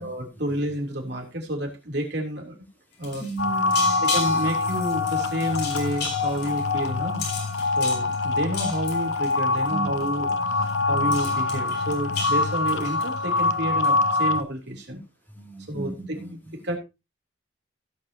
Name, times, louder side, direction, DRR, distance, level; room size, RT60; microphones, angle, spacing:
voice 1, 0.0-2.6 3.0-3.2 4.0-7.2 7.8-10.6 10.9-15.0 15.7-16.2 16.5-16.8, equal, 60° right, 2 dB, 3.3 m, -30 dB
sound 1, 2.9-9.7 10.0-10.3 10.6-10.7 11.0-13.5 13.8-14.2, left 4 dB, 55° left, 4.6 m, -35 dB
voice 2, 3.2-4.0 9.7-9.9 10.5-11.1 15.3-16.3, right 3 dB, 10° left, 0 dB, 3.2 m, -35 dB
sound 2, 3.4-14.4, left 3 dB, 70° left, 0.9 m, -25 dB
16.0 x 8.5 x 2.9 m, 0.26 s
head